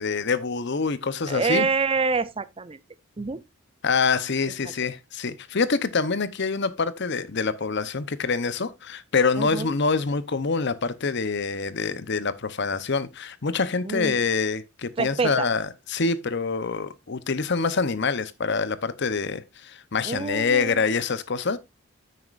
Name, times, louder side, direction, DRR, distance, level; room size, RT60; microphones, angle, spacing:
voice 1, 0.0-1.7 3.8-21.6, left 4 dB, 55° left, 0.8 m, -26 dB
voice 2, 1.3-2.8 3.2-3.4 9.4-9.7 13.8-14.2 15.0-15.5 20.0-20.8, right 4 dB, 25° right, 0.6 m, -26 dB
9.4 x 9.2 x 2.5 m
head